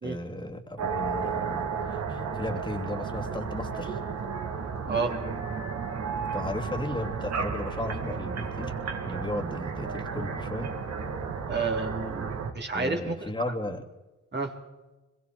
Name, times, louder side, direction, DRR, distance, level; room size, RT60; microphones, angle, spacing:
voice 1, 0.0-4.0 6.2-8.7 9.0-10.7 12.7-13.8, left 1 dB, 15° left, 3 dB, 2.9 m, -35 dB
sound 1, 0.8-12.5, right 5 dB, 60° right, 3.1 m, -33 dB
voice 2, 11.5-13.3 14.3-14.5, right 4 dB, 35° right, 2 dB, 3.9 m, -30 dB
25.5 x 22.5 x 4.7 m, 1.1 s
cardioid pair, 90°, 30 cm